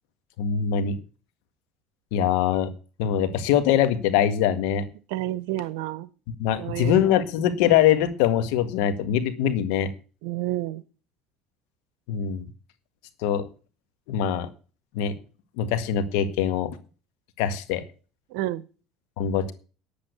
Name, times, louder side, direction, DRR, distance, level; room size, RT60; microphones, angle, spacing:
voice 1, 0.4-1.0 2.1-2.7 3.0-4.8 6.4-9.9 12.1-12.5 13.2-13.5 14.1-14.5 14.9-15.2 15.6-16.7 17.4-17.8 19.2-19.5, left 9 dB, 80° left, 10 dB, 1.8 m, -23 dB
voice 2, 5.1-6.1 6.6-7.0 10.2-10.8 18.3-18.6, right 15 dB, 80° right, 17 dB, 0.9 m, -29 dB
10.0 x 8.7 x 8.1 m, 0.37 s
supercardioid pair, 105°, 0 cm